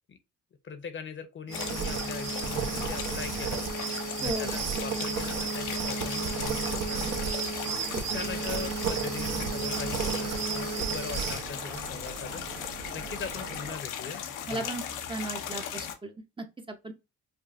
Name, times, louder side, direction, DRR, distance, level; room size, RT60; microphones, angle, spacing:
voice 1, 0.6-3.6 4.2-7.2 7.9-12.5 12.9-14.7, left 6 dB, 40° left, 0.8 m, -40 dB
sound 1, 1.5-15.9, left 8 dB, 90° left, 0.7 m, -37 dB
sound 2, 1.5-11.5, right 6 dB, 60° right, 0.9 m, -32 dB
voice 2, 4.2-4.6 7.9-8.3 14.5-16.9, right 2 dB, 15° right, 0.7 m, -37 dB
sound 3, 7.6-13.7, right 6 dB, 75° right, 1.2 m, -43 dB
5.3 x 2.4 x 2.5 m
cardioid pair, 90°, 30 cm